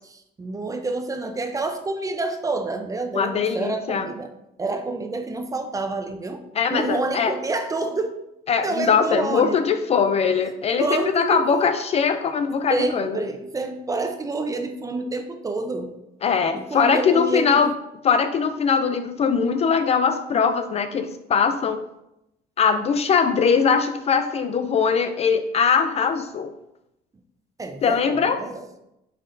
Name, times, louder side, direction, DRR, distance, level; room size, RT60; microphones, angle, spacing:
voice 1, 0.0-4.3 4.6-6.4 6.7-8.2 8.6-9.6 10.8-11.4 12.7-15.9 16.5-17.7 27.6-28.6, right 3 dB, 20° right, 6 dB, 0.5 m, -28 dB
voice 2, 3.1-4.1 6.6-7.3 8.5-13.2 16.2-17.7 18.0-21.8 22.6-26.5 27.8-28.4, left 6 dB, 40° left, 9 dB, 0.4 m, -21 dB
5.7 x 3.2 x 2.6 m, 0.84 s
cardioid pair, 110°, 17 cm